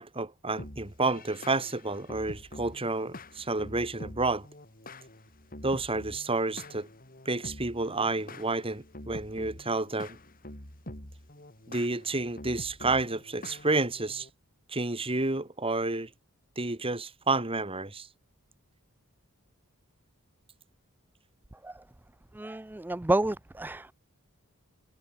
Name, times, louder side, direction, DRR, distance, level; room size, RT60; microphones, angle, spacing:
voice 1, 0.0-4.5 5.6-6.9 7.3-10.2 11.7-14.3 14.7-16.1 16.6-18.1, right 3 dB, 25° right, 2.3 m, -30 dB
sound 1, 0.6-14.3, left 1 dB, 40° left, 4.8 m, -46 dB
voice 2, 22.3-23.9, right 2 dB, 10° right, 0.4 m, -29 dB
head